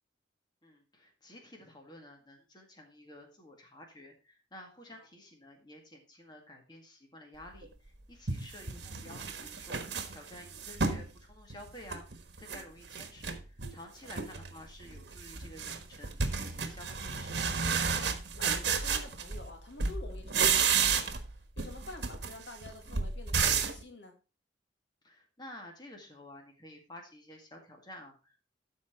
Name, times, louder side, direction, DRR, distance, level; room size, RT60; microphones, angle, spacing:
voice 1, 0.6-12.0 12.4-17.4 25.0-28.5, left 1 dB, 25° left, 2 dB, 2.0 m, -51 dB
sound 1, 7.6-7.7 8.3-11.1 11.5-12.6 12.9-13.8 14.1-14.5 14.8-19.5 19.8-21.3 21.6-23.8, right 6 dB, 65° right, 1.3 m, -32 dB
voice 2, 17.7-24.2, left 2 dB, 80° left, 3 dB, 2.1 m, -49 dB
12.5 x 4.6 x 4.4 m, 0.31 s
head